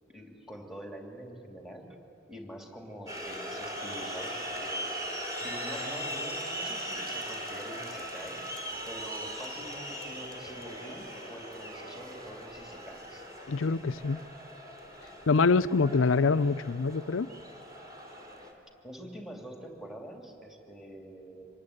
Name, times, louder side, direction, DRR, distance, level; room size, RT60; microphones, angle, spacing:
voice 1, 0.1-2.0 2.3-4.9 5.4-8.5 8.9-13.3 18.8-21.4, equal, ahead, 2.8 m, -45 dB
sound 1, 3.1-18.5, equal, 20° right, 3.3 m, -39 dB
voice 2, 13.5-14.2 15.3-17.3, left 4 dB, 80° left, 0.6 m, -25 dB
26.0 x 20.0 x 9.9 m
head